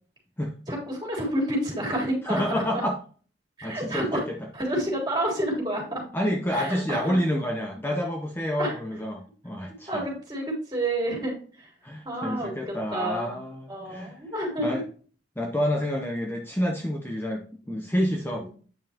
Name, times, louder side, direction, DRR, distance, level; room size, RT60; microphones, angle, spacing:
voice 1, 0.7-2.8 3.6-4.2 4.5-6.0 6.5-7.2 8.6-8.8 9.9-11.7 12.0-13.3 13.7-14.7 18.3-18.4, right 1 dB, 25° right, -1 dB, 3.6 m, -29 dB
voice 2, 2.2-3.0 3.6-4.2 6.1-10.0 11.8-14.1 14.6-14.8 15.4-18.5, equal, 10° left, 1 dB, 0.8 m, -28 dB
9.2 x 5.5 x 2.8 m, 0.41 s
head